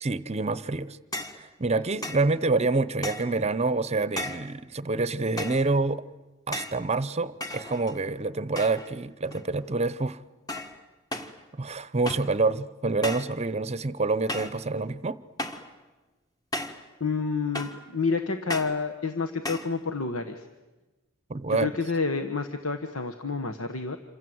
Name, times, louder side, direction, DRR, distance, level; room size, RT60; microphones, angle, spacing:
voice 1, 0.0-1.0 1.3-6.0 6.5-10.2 11.6-15.2 21.3-21.7, right 3 dB, 30° right, 16 dB, 0.8 m, -27 dB
sound 1, 1.1-1.4 2.0-2.3 3.0-3.4 4.2-4.5 5.4-5.7 6.5-6.8 7.4-8.1 8.6-8.9 9.3-9.7 10.5-10.8 11.1-11.4 12.1-12.4 13.0-13.4 14.3-14.6 15.4-15.7 16.5-16.9 17.5-17.9 18.5-18.8 19.4-19.7, left 1 dB, 20° left, 1.6 m, -35 dB
voice 2, 17.0-20.5 21.6-24.0, left 4 dB, 75° left, 6 dB, 1.3 m, -29 dB
27.5 x 25.0 x 7.9 m, 1.1 s
head